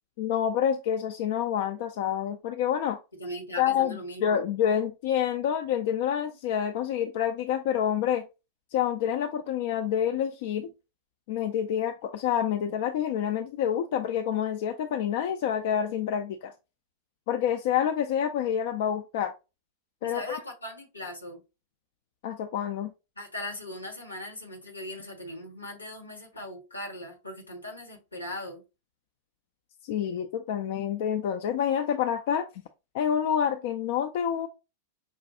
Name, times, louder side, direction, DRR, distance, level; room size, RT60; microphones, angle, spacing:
voice 1, 0.2-3.0 3.6-8.3 8.7-10.7 11.3-16.5 17.3-19.3 20.0-20.2 22.2-22.9 29.8-32.5 32.9-34.5, left 9 dB, 50° left, 0.4 m, -27 dB
voice 2, 3.2-4.4 20.0-21.4 23.2-28.6, left 1 dB, 80° left, 1.1 m, -39 dB
5.3 x 2.2 x 2.7 m
figure-of-eight pair, 90°, 0 cm